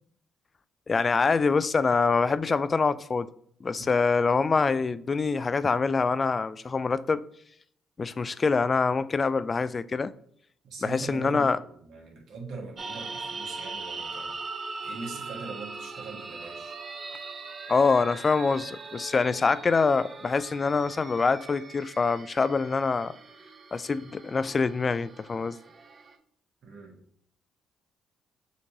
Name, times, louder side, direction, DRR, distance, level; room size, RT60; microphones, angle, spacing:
voice 1, 0.9-3.3 3.6-7.2 8.0-10.1 10.8-11.6 17.7-23.2 23.7-25.6, left 4 dB, 40° left, 0.3 m, -25 dB
voice 2, 10.6-16.8 26.6-27.0, right 4 dB, 65° right, 1.5 m, -42 dB
sound 1, 12.8-26.2, right 4 dB, 45° right, 0.6 m, -41 dB
6.6 x 2.9 x 2.7 m
supercardioid pair, 60°, 0 cm